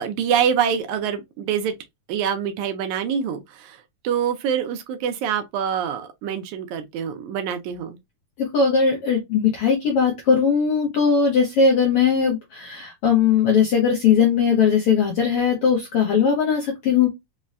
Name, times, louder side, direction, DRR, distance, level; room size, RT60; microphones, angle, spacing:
voice 1, 0.0-1.7 2.1-8.0, right 8 dB, 80° right, 1.8 m, -25 dB
voice 2, 8.4-17.1, left 6 dB, 75° left, 1.3 m, -19 dB
5.2 x 2.1 x 2.5 m
omnidirectional pair, 3.7 m